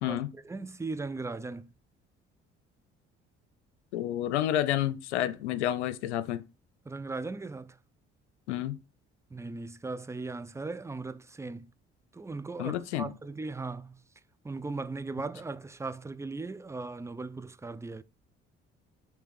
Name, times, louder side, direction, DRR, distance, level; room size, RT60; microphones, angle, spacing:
voice 1, 0.0-1.7 6.8-7.8 9.3-11.7 12.1-14.0 14.4-18.0, right 3 dB, 10° right, 0.5 m, -38 dB
voice 2, 3.9-6.4 8.5-8.8 12.6-13.1, left 12 dB, 85° left, 0.6 m, -30 dB
6.5 x 3.4 x 5.3 m
hypercardioid pair, 55°, 33 cm